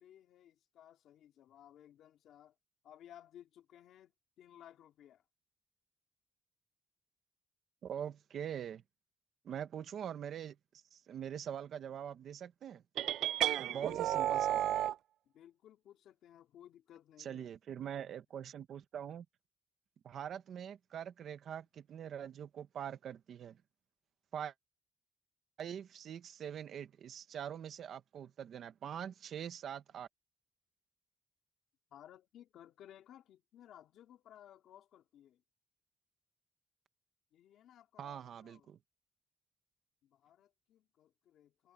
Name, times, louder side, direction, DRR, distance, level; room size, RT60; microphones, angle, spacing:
voice 1, 0.0-2.6 2.8-5.2 13.4-14.7 15.2-17.5 31.9-35.4 37.3-38.7 40.0-41.7, left 11 dB, 80° left, 3.0 m, -58 dB
voice 2, 7.8-8.8 9.4-10.6 10.9-12.8 13.6-14.7 17.2-19.2 20.0-23.6 24.3-24.5 25.6-30.1 38.0-38.8, right 9 dB, 55° right, 1.3 m, -43 dB
sound 1, 13.0-15.0, right 12 dB, 85° right, 0.4 m, -32 dB
cardioid pair, 170°, 0 cm